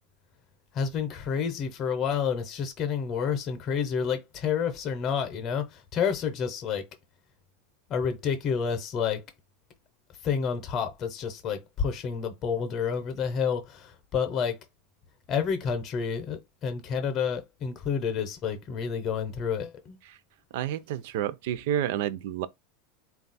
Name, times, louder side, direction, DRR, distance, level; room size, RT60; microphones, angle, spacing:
voice 1, 0.7-6.8 7.9-9.2 10.2-14.6 15.3-20.0, left 7 dB, 30° left, 0.7 m, -29 dB
voice 2, 20.5-22.5, right 11 dB, 65° right, 0.4 m, -29 dB
4.0 x 2.3 x 4.0 m
supercardioid pair, 160°, 0 cm